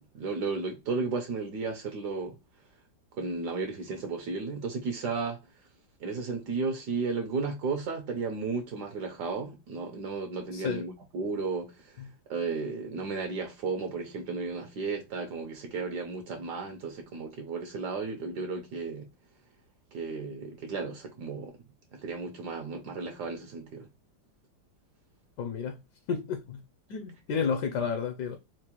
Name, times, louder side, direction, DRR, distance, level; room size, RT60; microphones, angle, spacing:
voice 1, 0.1-2.4 3.1-5.4 6.0-12.0 12.3-19.1 19.9-21.5 21.9-23.9, right 4 dB, 65° right, 1.2 m, -34 dB
voice 2, 10.5-10.8 12.0-12.1 25.4-25.8 26.1-26.6 26.9-28.4, left 6 dB, 70° left, 1.0 m, -31 dB
4.4 x 2.1 x 2.9 m
omnidirectional pair, 2.1 m